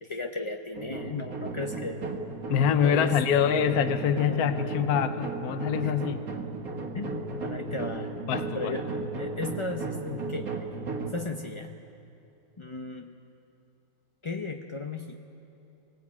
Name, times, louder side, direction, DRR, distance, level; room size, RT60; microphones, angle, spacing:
voice 1, 0.0-2.0 2.8-3.5 4.3-4.8 5.8-5.9 6.9-8.1 8.5-10.5 11.1-11.8 12.6-13.2 14.2-15.2, left 3 dB, 40° left, 3 dB, 0.4 m, -35 dB
sound 1, 0.7-11.1, right 3 dB, 55° right, 1.9 m, -35 dB
voice 2, 2.5-6.2 8.3-8.7, left 8 dB, 65° left, 9 dB, 1.3 m, -25 dB
24.0 x 18.5 x 8.6 m, 2.8 s
omnidirectional pair, 1.8 m